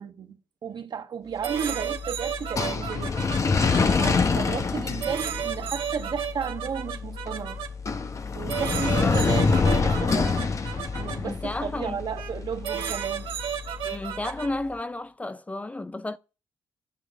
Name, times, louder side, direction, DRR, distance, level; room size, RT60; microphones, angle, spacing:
voice 1, 0.0-3.2 4.0-7.6 8.3-10.5 11.0-13.3, right 7 dB, 55° right, 1.3 m, -34 dB
sound 1, 1.4-14.5, left 4 dB, 35° left, 0.9 m, -27 dB
sound 2, 1.4-4.1 5.0-7.7 8.5-11.2 12.2-12.3 12.6-14.5, right 9 dB, 90° right, 1.4 m, -33 dB
voice 2, 8.9-9.4 11.2-12.0 13.8-16.2, left 2 dB, 15° left, 0.4 m, -32 dB
11.0 x 6.3 x 5.1 m
cardioid pair, 95°, 9 cm